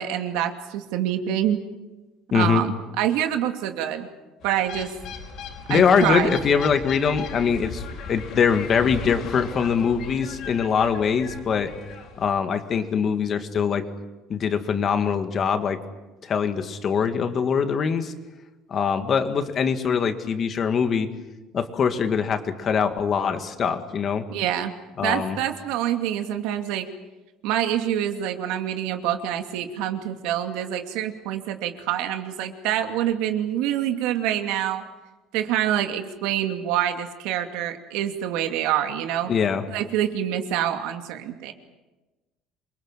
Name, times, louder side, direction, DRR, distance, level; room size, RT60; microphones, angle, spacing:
voice 1, 0.0-1.6 2.3-4.1 4.4-4.9 5.7-6.4 24.3-24.7 25.0-26.9 27.4-34.8 35.3-39.3 39.7-41.5, right 11 dB, 85° right, 6 dB, 2.6 m, -26 dB
voice 2, 2.3-2.6 5.7-11.7 12.2-13.8 14.3-15.8 16.2-18.1 18.7-21.1 21.5-24.2 25.0-25.4 39.3-39.6, left 6 dB, 35° left, 8 dB, 2.0 m, -23 dB
sound 1, 4.4-12.2, left 5 dB, 50° left, 4.8 m, -37 dB
28.0 x 23.5 x 7.5 m, 1.1 s
cardioid pair, 160°, 0 cm